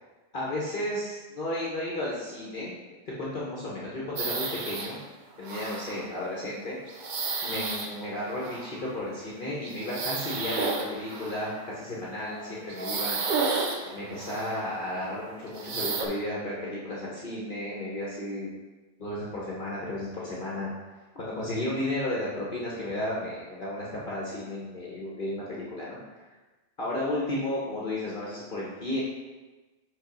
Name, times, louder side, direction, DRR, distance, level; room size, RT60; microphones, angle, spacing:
voice 1, 0.3-2.7 3.2-5.0 5.4-6.8 7.2-13.5 13.9-18.5 19.0-20.7 21.1-26.0 26.8-29.0, left 1 dB, 50° left, -6 dB, 1.2 m, -33 dB
sound 1, 4.2-4.9 5.4-6.1 6.8-9.1 9.6-11.6 12.3-14.7 15.5-16.1, right 4 dB, 50° right, 0.7 m, -32 dB
5.3 x 4.0 x 5.2 m, 1.2 s
omnidirectional pair, 1.2 m